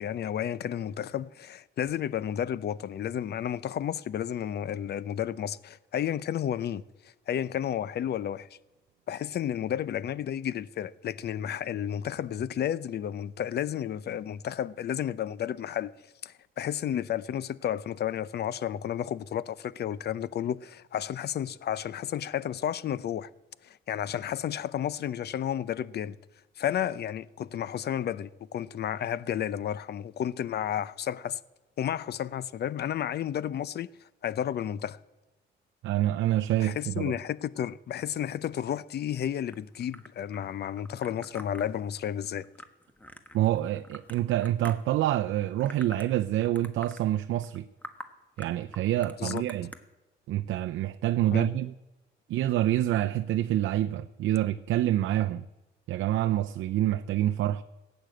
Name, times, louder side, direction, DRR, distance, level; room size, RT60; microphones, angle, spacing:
voice 1, 0.0-6.8 7.3-8.5 9.1-15.9 16.2-23.3 23.6-26.2 26.6-31.4 31.8-33.9 34.2-35.0 36.6-42.4 49.2-49.4 51.3-51.5, left 10 dB, 55° left, 0.6 m, -32 dB
voice 2, 35.8-37.1 43.3-47.7 48.4-49.7 50.3-51.7 52.3-55.4 55.9-57.6, right 13 dB, 75° right, 0.5 m, -27 dB
sound 1, 39.5-45.0 45.4-46.2 46.4-47.0 47.4-47.6 47.8-48.1 48.4-49.8, left 1 dB, 5° left, 1.3 m, -46 dB
15.0 x 9.0 x 7.8 m
cardioid pair, 90°, 20 cm